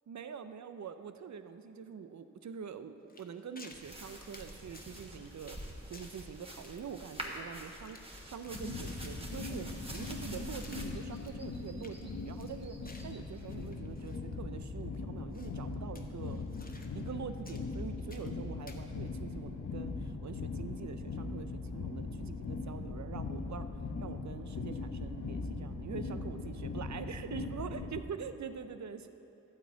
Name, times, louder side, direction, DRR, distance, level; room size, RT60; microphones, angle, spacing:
voice 1, 0.1-5.6 5.9-12.8 13.0-16.4 16.9-23.7 24.0-29.1, right 7 dB, 70° right, 10 dB, 0.5 m, -44 dB
sound 1, 3.1-3.9 4.2-5.1 5.4-5.7 5.9-6.3 6.6-8.1 8.4-10.2 10.6-10.9 11.2-11.3 11.6-12.0 12.4-14.2 14.6-14.7 15.3-15.6 16.0-17.2 17.5-18.4 18.7-18.8, left 2 dB, 30° left, 0.9 m, -56 dB
sound 2, 3.7-13.7, right 1 dB, 20° right, 1.3 m, -47 dB
sound 3, 8.5-28.0, left 3 dB, 75° left, 0.8 m, -40 dB
12.0 x 4.2 x 8.1 m, 2.9 s
cardioid pair, 45°, 29 cm